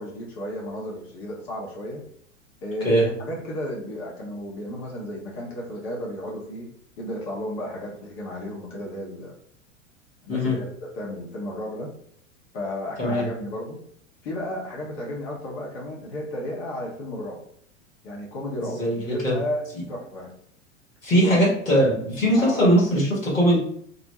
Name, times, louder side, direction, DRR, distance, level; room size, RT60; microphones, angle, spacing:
voice 1, 0.0-2.0 2.6-6.7 7.0-9.3 10.2-10.7 10.9-11.9 12.5-13.8 14.2-17.4 18.0-20.3 21.2-21.5 22.3-22.7, left 1 dB, 55° left, -3 dB, 0.9 m, -33 dB
voice 2, 18.6-19.4 21.0-23.6, equal, 85° left, -5 dB, 1.2 m, -20 dB
2.5 x 2.0 x 3.0 m, 0.64 s
figure-of-eight pair, 90°, 39 cm